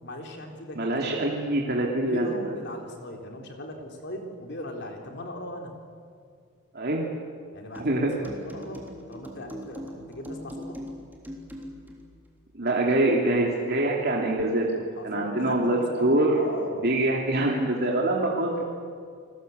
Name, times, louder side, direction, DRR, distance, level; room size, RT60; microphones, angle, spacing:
voice 1, 0.0-1.2 2.0-5.7 7.5-10.8 15.0-16.9, left 1 dB, 55° left, 3 dB, 3.8 m, -38 dB
voice 2, 0.8-2.5 6.7-7.0 7.8-8.1 12.5-16.4 16.8-18.6, right 1 dB, 50° right, -2 dB, 2.8 m, -24 dB
sound 1, 7.7-12.0, equal, 10° right, 3.4 m, -41 dB
30.0 x 20.0 x 8.0 m, 2.2 s
head